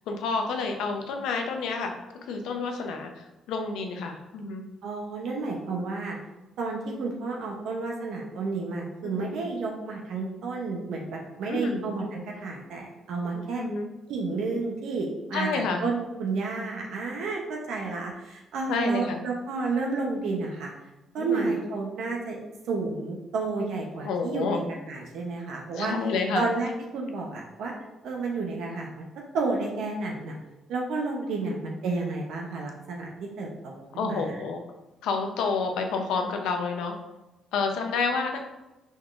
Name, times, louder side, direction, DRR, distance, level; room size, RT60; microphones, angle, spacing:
voice 1, 0.1-1.9 2.2-4.6 9.0-9.3 11.5-11.8 13.3-13.9 15.3-15.8 18.7-19.2 21.2-21.6 24.0-24.6 25.7-26.5 33.9-34.6 35.0-36.9 37.5-38.4, left 4 dB, 90° left, 4 dB, 0.6 m, -29 dB
voice 2, 4.8-6.2 6.6-13.6 14.1-15.5 15.8-20.7 21.1-22.4 22.7-24.6 24.9-25.9 26.3-27.7 28.0-29.1 29.3-30.4 30.7-33.1 33.4-34.2, right 3 dB, 80° right, -1 dB, 0.7 m, -31 dB
5.3 x 3.6 x 2.5 m, 1.0 s
cardioid pair, 90°, 0 cm